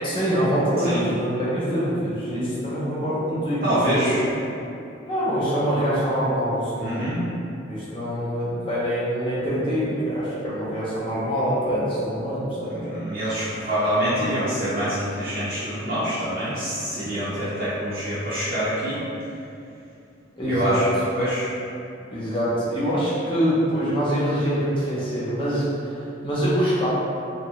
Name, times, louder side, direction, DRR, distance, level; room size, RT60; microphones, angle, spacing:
voice 1, 0.0-4.0 5.1-7.1 7.7-12.8 20.4-20.8 22.1-26.0 26.2-26.9, equal, 25° left, -8 dB, 0.6 m, -24 dB
voice 2, 3.6-4.3 6.8-7.2 12.7-19.0 20.4-20.8 21.2-21.5, equal, 45° right, -12 dB, 0.5 m, -25 dB
2.6 x 2.2 x 2.8 m, 2.7 s
head